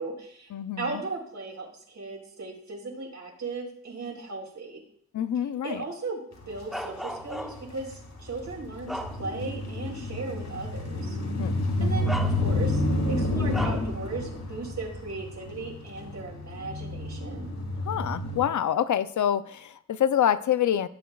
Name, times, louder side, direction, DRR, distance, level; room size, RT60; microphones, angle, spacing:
voice 1, 0.0-0.5 0.8-4.8 5.6-6.2 6.5-11.2 11.8-17.5, right 3 dB, 65° right, 0 dB, 3.8 m, -37 dB
voice 2, 0.5-1.0 5.1-5.8 11.4-12.2 17.8-20.9, left 10 dB, 90° left, 13 dB, 0.6 m, -27 dB
sound 1, 6.4-6.8 7.1-18.5, left 1 dB, 65° left, 2.7 m, -30 dB
Bark, 6.7-7.8 8.4-9.6 10.1-10.2 11.3-11.5 12.0-12.8 13.5-13.9, equal, ahead, 0.9 m, -36 dB
16.0 x 9.1 x 2.4 m, 0.63 s
wide cardioid pair, 90°, 29 cm